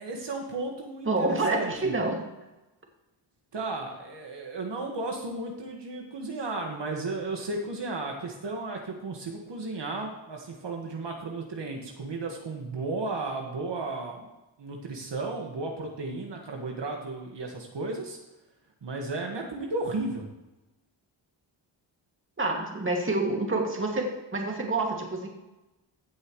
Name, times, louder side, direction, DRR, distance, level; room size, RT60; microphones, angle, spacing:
voice 1, 0.0-1.9 3.5-14.3 14.6-18.2 18.8-20.2, right 3 dB, 60° right, 1 dB, 1.8 m, -34 dB
voice 2, 1.1-2.3 22.4-25.3, right 2 dB, 25° right, 1 dB, 2.3 m, -27 dB
15.5 x 7.6 x 3.2 m, 1.0 s
cardioid pair, 75°, 47 cm